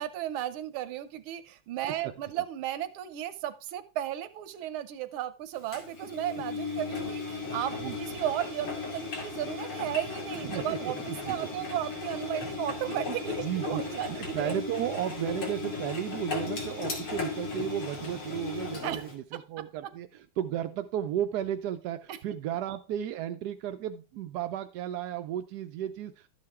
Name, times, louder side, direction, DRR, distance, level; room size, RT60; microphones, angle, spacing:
voice 1, 0.0-14.5 18.8-19.4 22.1-22.2, right 12 dB, 90° right, 12 dB, 1.5 m, -35 dB
voice 2, 2.0-2.4 7.8-8.0 10.4-11.7 13.1-13.2 13.4-26.3, right 11 dB, 70° right, 9 dB, 0.9 m, -34 dB
Engine, 5.7-19.1, left 4 dB, 85° left, 3.3 m, -36 dB
12.5 x 7.7 x 3.5 m, 0.33 s
omnidirectional pair, 2.2 m